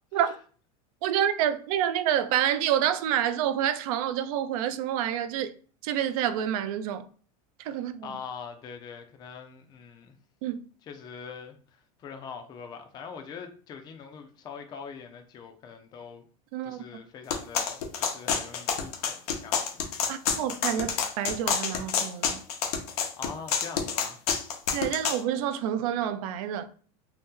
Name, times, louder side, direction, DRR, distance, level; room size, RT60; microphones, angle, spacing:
voice 1, 1.0-5.5 5.8-7.1 7.6-8.1 10.4-10.7 16.5-16.8 20.1-22.4 24.7-26.7, right 10 dB, 70° right, 0.4 m, -28 dB
voice 2, 8.0-10.2 10.8-16.3 16.6-20.1 23.2-24.2, left 6 dB, 20° left, 0.4 m, -43 dB
sound 1, 17.3-25.2, left 6 dB, 85° left, 0.7 m, -28 dB
2.7 x 2.1 x 3.6 m
supercardioid pair, 145°, 19 cm